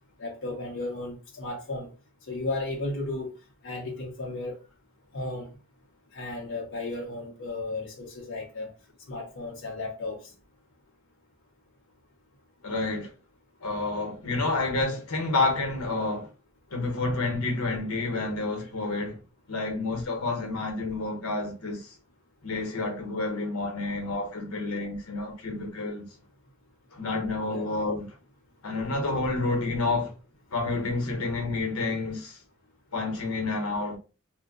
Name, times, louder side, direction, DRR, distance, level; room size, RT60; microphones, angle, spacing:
voice 1, 0.2-1.9 2.3-3.3 3.6-4.6 5.1-5.5 6.1-8.7 9.1-10.2 27.5-27.7, left 2 dB, 60° left, 0.7 m, -34 dB
voice 2, 12.6-13.1 13.6-16.3 16.7-19.2 19.5-21.9 22.4-26.0 26.9-28.1 28.6-30.1 30.5-32.4 32.9-34.0, left 3 dB, 90° left, 0.9 m, -29 dB
2.6 x 2.1 x 3.6 m
head